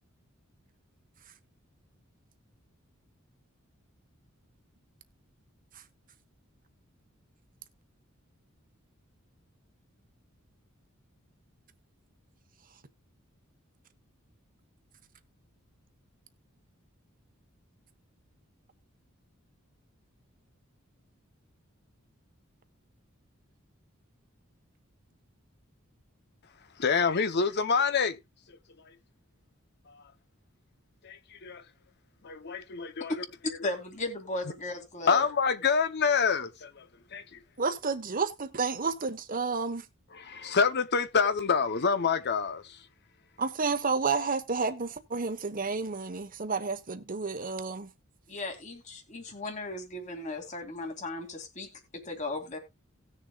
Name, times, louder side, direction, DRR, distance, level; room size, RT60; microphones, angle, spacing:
voice 1, 26.8-28.2 28.5-29.0 29.9-30.0 31.0-31.6 32.2-33.2 35.1-37.4 40.1-42.9, left 5 dB, 55° left, 0.8 m, -27 dB
voice 2, 33.6-35.2 48.3-51.7 52.1-52.6, left 2 dB, 35° left, 2.6 m, -36 dB
voice 3, 37.6-39.8 43.4-47.9, right 4 dB, 40° right, 1.1 m, -30 dB
18.5 x 6.7 x 2.4 m
head